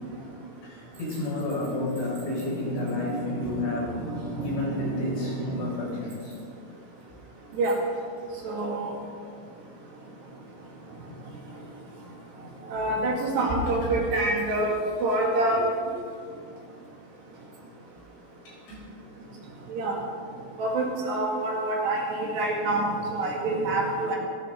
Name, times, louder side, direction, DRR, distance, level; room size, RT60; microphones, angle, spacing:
voice 1, 0.6-4.0 4.4-6.3 18.5-18.8, left 2 dB, 70° left, -4 dB, 7.3 m, -31 dB
voice 2, 4.0-5.5 7.6-7.8 8.4-8.9 12.7-15.6 19.7-20.0 20.6-24.2, right 2 dB, 60° right, -2 dB, 4.4 m, -27 dB
27.0 x 13.0 x 3.9 m, 2.2 s
omnidirectional pair, 5.8 m